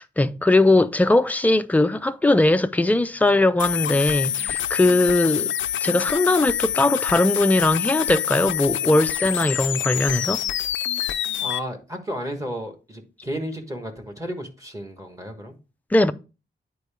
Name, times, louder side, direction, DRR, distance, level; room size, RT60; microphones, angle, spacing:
voice 1, 0.0-5.5 5.8-10.4 15.9-16.1, left 2 dB, 10° left, 0.3 m, -20 dB
sound 1, 3.6-11.6, left 10 dB, 85° left, 0.4 m, -26 dB
voice 2, 11.4-15.5, equal, 15° right, 1.4 m, -33 dB
9.5 x 4.5 x 3.4 m
wide cardioid pair, 145°, 19 cm